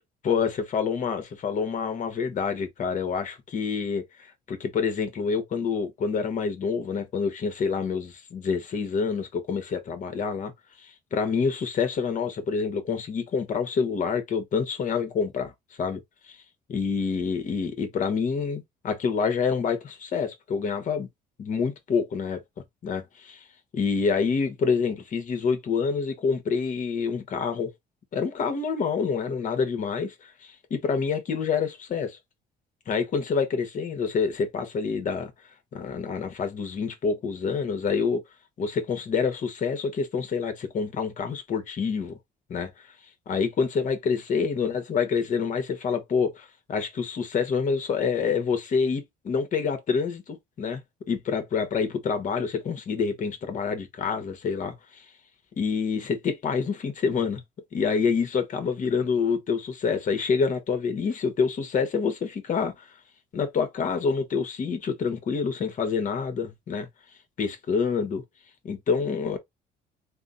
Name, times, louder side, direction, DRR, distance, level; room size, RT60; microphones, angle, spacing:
voice 1, 0.2-10.5 10.8-15.5 15.8-16.0 16.3-16.4 16.7-21.1 21.4-22.4 22.8-23.4 23.7-27.7 28.1-32.2 32.9-35.3 35.7-38.2 38.6-42.2 42.5-42.9 43.3-50.8 51.1-55.0 55.6-57.4 57.7-62.9 63.3-66.9 67.4-68.2 68.6-69.4, left 5 dB, 50° left, 1.3 m, -27 dB
3.5 x 2.2 x 3.9 m
cardioid pair, 110°, 17 cm